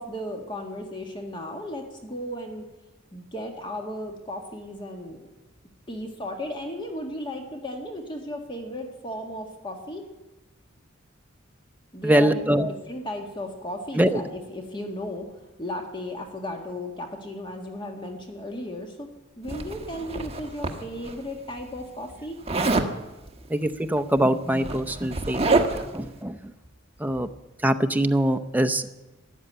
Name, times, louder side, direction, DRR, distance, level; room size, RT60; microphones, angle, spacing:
voice 1, 0.0-2.7 3.1-5.3 5.9-10.0 11.9-19.1 19.4-22.4, left 1 dB, 25° left, 3 dB, 1.7 m, -35 dB
voice 2, 12.0-12.7 14.0-14.2 23.5-26.4 27.0-27.3 27.6-28.9, right 1 dB, 10° right, 7 dB, 0.7 m, -23 dB
Zipper (clothing), 19.5-21.1 22.5-22.9 24.1-24.2 24.5-26.0, right 3 dB, 30° right, 1.3 m, -26 dB
13.5 x 11.0 x 8.7 m, 1.1 s
head